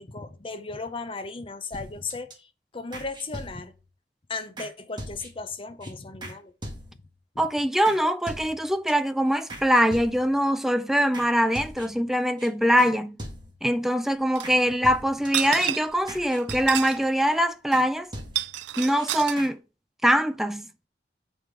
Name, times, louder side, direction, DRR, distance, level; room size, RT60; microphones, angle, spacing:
voice 1, 0.0-3.7 4.3-6.5 7.3-7.5 14.6-14.8, left 3 dB, 30° left, 0.7 m, -36 dB
sound 1, 1.7-2.3 2.9-3.9 4.6-4.7 5.0-5.5 5.8-5.9 6.2-6.4 6.6-7.1 7.8-8.0 8.3-8.9 9.5-10.4 11.1-11.3 11.5-12.1 12.4-12.5 12.8-12.9 13.2-13.7 14.4-14.6 14.8-15.5 16.1-17.0 17.7-17.9 18.1-18.7 19.0-19.1 19.4-19.5, right 1 dB, 25° right, 1.6 m, -40 dB
voice 2, 7.4-13.2 13.6-18.1 18.8-19.6 20.0-20.7, equal, ahead, 0.3 m, -23 dB
sound 2, 14.4-14.5 15.2-16.0 16.4-17.0 17.3-17.4 18.2-19.4, right 13 dB, 75° right, 0.3 m, -30 dB
7.6 x 3.6 x 4.7 m
head